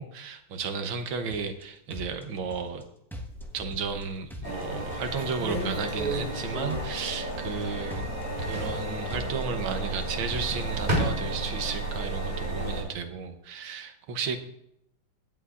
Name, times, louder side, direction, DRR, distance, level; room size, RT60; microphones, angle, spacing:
voice 1, 0.0-2.8 3.5-14.4, right 5 dB, 70° right, 7 dB, 1.7 m, -33 dB
sound 1, 1.3-1.6 1.9-2.8 3.1-4.0 4.3-5.2 5.5-6.4 6.7-7.6 7.9-8.8 9.1-10.0 10.3-10.9, left 1 dB, ahead, 0.7 m, -41 dB
sound 2, 3.2-4.2 4.7-4.8 5.2-7.8 8.1-8.9 10.1-11.8 12.3-12.9, right 1 dB, 25° right, 3.0 m, -33 dB
sound 3, 4.4-12.8, right 2 dB, 40° left, 4.6 m, -34 dB
23.5 x 8.2 x 2.5 m, 0.79 s
omnidirectional pair, 2.3 m